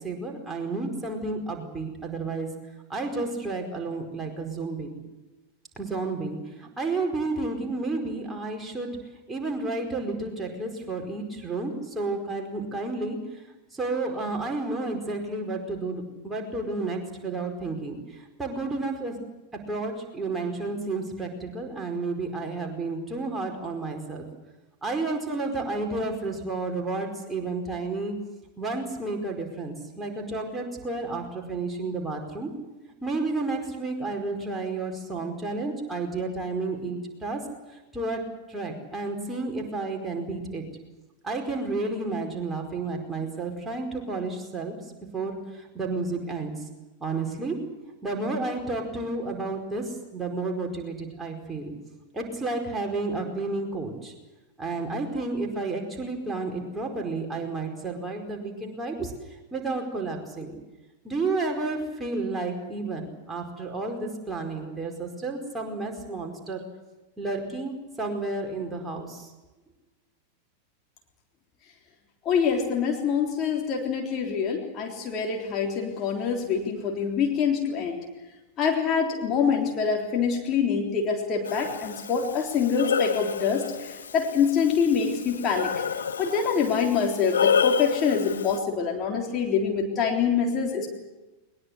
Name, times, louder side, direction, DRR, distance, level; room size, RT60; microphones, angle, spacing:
voice 1, 0.0-2.5 2.9-4.9 5.8-8.9 9.3-13.4 13.7-19.1 19.7-24.3 24.8-28.1 28.6-32.5 33.0-37.4 37.7-40.6 41.2-44.8 45.1-46.5 47.0-47.6 48.0-51.7 52.1-54.1 54.6-60.6 61.0-66.6 67.2-69.3, right 3 dB, 10° right, 1 dB, 4.8 m, -31 dB
voice 2, 72.3-78.0 78.6-85.7 86.2-90.9, left 6 dB, 30° left, 0 dB, 3.7 m, -25 dB
Breathing, 81.4-88.6, left 7 dB, 70° left, 1.3 m, -29 dB
21.5 x 21.5 x 8.1 m, 1.1 s
figure-of-eight pair, 90°, 0 cm